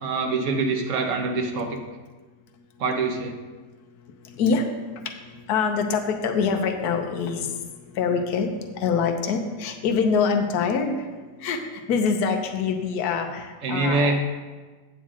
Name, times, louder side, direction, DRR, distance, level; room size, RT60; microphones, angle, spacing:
voice 1, 0.0-1.8 2.8-3.4 13.6-14.2, right 3 dB, 55° right, 4 dB, 1.1 m, -24 dB
voice 2, 5.5-7.5 8.0-11.0 11.4-11.6 11.9-14.1, left 5 dB, 70° left, 4 dB, 1.3 m, -24 dB
8.7 x 8.4 x 3.7 m, 1.3 s
omnidirectional pair, 1.8 m